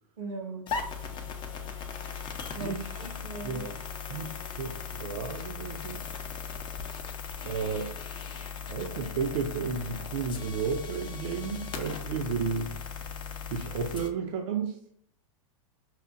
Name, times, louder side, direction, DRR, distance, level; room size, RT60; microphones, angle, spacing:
voice 1, 0.2-0.6 2.5-3.7 4.1-4.3, right 3 dB, 85° right, 4 dB, 1.1 m, -39 dB
sound 1, 0.7-14.1, left 6 dB, 30° left, 0.5 m, -38 dB
voice 2, 2.6-3.1 3.4-3.7 4.1-6.1 7.4-7.9 8.3-12.7 13.5-14.8, right 5 dB, 65° right, 1 dB, 0.6 m, -33 dB
5.7 x 2.2 x 2.5 m, 0.66 s
hypercardioid pair, 115°, 17 cm